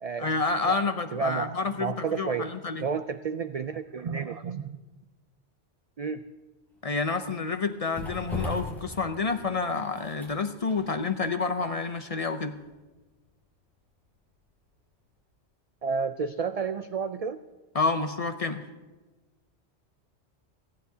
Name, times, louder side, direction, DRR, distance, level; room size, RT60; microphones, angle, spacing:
voice 1, 0.2-2.9 6.8-12.6 17.7-18.6, left 4 dB, 40° left, 8 dB, 0.6 m, -29 dB
voice 2, 1.1-1.5 1.8-2.5 2.8-4.8 6.0-6.2 15.8-17.4, right 5 dB, 60° right, 10 dB, 0.4 m, -31 dB
sound 1, 6.7-14.7 15.0-15.1, left 1 dB, ahead, 5.6 m, -41 dB
29.5 x 10.5 x 2.8 m, 1.2 s
omnidirectional pair, 1.1 m